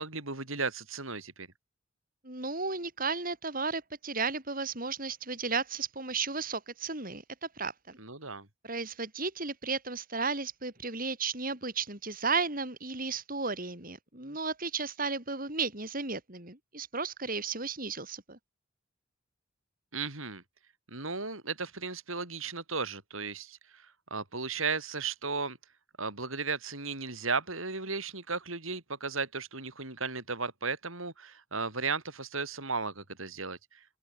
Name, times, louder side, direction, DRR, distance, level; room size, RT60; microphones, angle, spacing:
voice 1, 0.0-1.5 8.0-8.5 19.9-20.4 20.9-23.6 24.1-25.6 26.0-33.6, right 4 dB, 80° right, 6.8 m, -35 dB
voice 2, 2.2-8.0 8.6-18.4, right 4 dB, 45° right, 5.5 m, -34 dB
open air
head